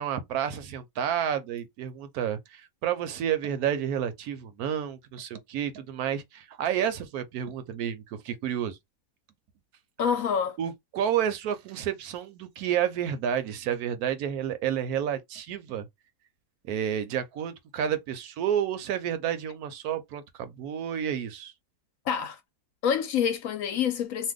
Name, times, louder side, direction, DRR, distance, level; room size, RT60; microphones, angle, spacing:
voice 1, 0.0-8.8 10.6-15.9 16.6-21.5, right 9 dB, 75° right, 1.0 m, -30 dB
voice 2, 10.0-10.6 22.1-22.4 22.8-24.3, left 7 dB, 70° left, 0.9 m, -27 dB
2.7 x 2.2 x 3.5 m
omnidirectional pair, 1.7 m